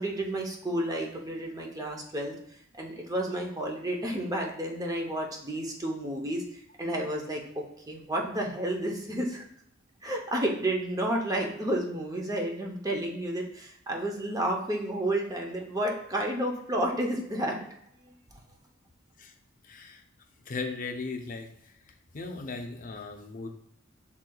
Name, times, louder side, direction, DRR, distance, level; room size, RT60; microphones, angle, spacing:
voice 1, 0.0-2.3 2.8-6.4 6.8-9.5 10.0-17.6, right 1 dB, 20° right, 0 dB, 0.7 m, -31 dB
voice 2, 19.6-20.0 20.5-21.7 22.1-23.5, left 4 dB, 40° left, 4 dB, 0.5 m, -37 dB
6.1 x 3.7 x 2.3 m, 0.73 s
head